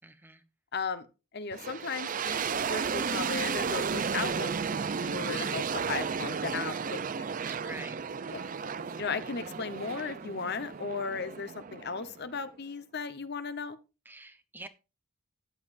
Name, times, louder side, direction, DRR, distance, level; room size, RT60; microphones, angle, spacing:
voice 1, 0.0-0.4 7.5-8.4 14.0-14.7, right 2 dB, 10° right, 0.7 m, -47 dB
voice 2, 0.7-1.1 1.3-7.2 8.3-8.4 9.0-13.8, left 5 dB, 50° left, 1.0 m, -36 dB
sound 1, 1.5-12.5, right 6 dB, 40° right, 0.5 m, -33 dB
sound 2, 5.4-11.0, right 3 dB, 70° right, 1.9 m, -58 dB
13.5 x 9.6 x 2.6 m
head